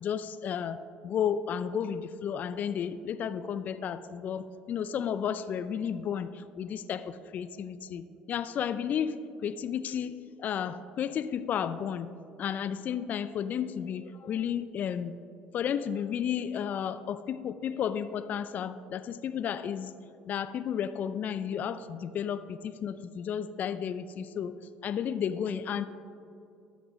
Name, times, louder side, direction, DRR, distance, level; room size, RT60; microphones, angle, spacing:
voice 1, 0.0-12.1 12.4-15.2 15.5-19.9 20.3-24.6 24.8-25.9, left 8 dB, 50° left, 13 dB, 0.3 m, -33 dB
13.0 x 6.0 x 3.0 m, 2.6 s
hypercardioid pair, 65°, 4 cm